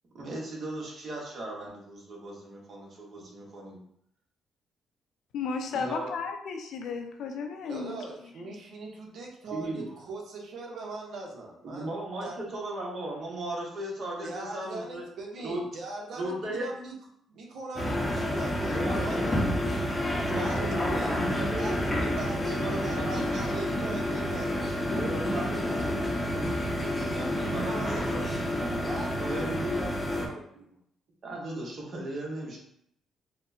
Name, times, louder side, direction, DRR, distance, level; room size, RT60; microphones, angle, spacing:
voice 1, 0.1-3.8 5.7-6.1 9.5-9.9 11.6-15.0 15.4-15.6 16.1-16.7 18.7-19.9 20.3-23.7 24.9-26.5 26.8-28.8 29.2-29.7 31.2-32.6, right 1 dB, 55° right, -2 dB, 1.1 m, -37 dB
voice 2, 5.3-8.5, left 5 dB, 75° left, 4 dB, 0.5 m, -34 dB
voice 3, 7.7-11.9 12.2-12.4 14.2-16.9 17.3-19.4 20.4-20.6 20.9-21.2 21.6-25.0 26.7-27.1 27.6-28.4 28.8-30.8, right 2 dB, 70° right, 0 dB, 0.8 m, -40 dB
sound 1, 17.8-30.3, left 1 dB, 20° left, 0.7 m, -29 dB
4.2 x 2.2 x 2.6 m, 0.71 s
cardioid pair, 90°, 0 cm